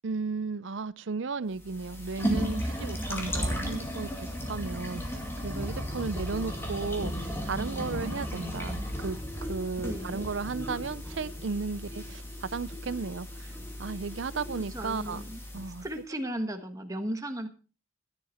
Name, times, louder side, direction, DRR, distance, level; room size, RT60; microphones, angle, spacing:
voice 1, 0.0-13.5 13.8-15.2 15.5-15.9, right 4 dB, 60° right, 0.6 m, -35 dB
sound 1, 1.6-15.9, equal, 10° left, 2.3 m, -35 dB
voice 2, 9.8-10.2 14.7-15.4 15.8-17.5, right 1 dB, 15° right, 1.2 m, -35 dB
14.5 x 10.5 x 4.4 m
head